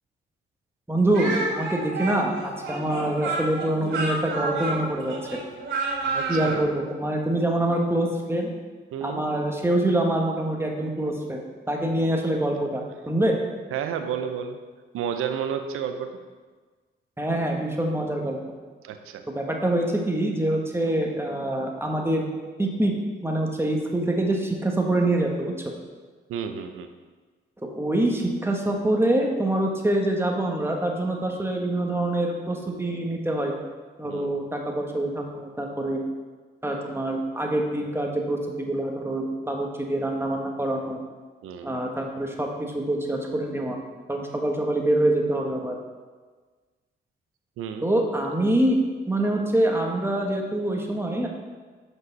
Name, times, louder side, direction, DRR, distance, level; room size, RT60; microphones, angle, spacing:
voice 1, 0.9-5.2 6.0-8.5 9.0-11.4 11.7-13.3 17.2-18.4 19.3-22.3 22.6-22.9 23.2-25.5 27.6-33.5 34.0-36.0 36.6-41.0 41.6-43.8 44.1-45.8 47.8-48.8 49.1-51.3, right 1 dB, 10° right, 0 dB, 1.4 m, -25 dB
Speech, 1.1-6.6, right 3 dB, 65° right, 2.5 m, -29 dB
voice 2, 6.1-6.7 8.9-9.2 13.7-14.6 14.9-16.2 18.8-19.2 26.3-26.9 34.1-34.4 41.4-41.7 47.6-47.9, right 8 dB, 85° right, 7 dB, 0.6 m, -31 dB
7.9 x 5.3 x 4.0 m, 1.4 s
supercardioid pair, 60°, 21 cm